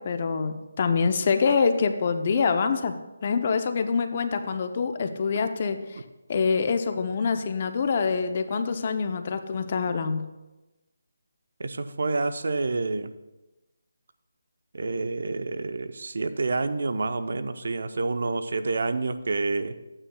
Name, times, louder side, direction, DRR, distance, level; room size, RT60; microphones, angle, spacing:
voice 1, 0.0-2.9 3.2-6.0 6.3-10.3, left 5 dB, 40° left, 8 dB, 0.6 m, -25 dB
voice 2, 11.6-13.1 14.7-19.8, right 3 dB, 65° right, 10 dB, 0.7 m, -28 dB
13.0 x 8.9 x 2.3 m, 1.0 s
figure-of-eight pair, 160°, 0 cm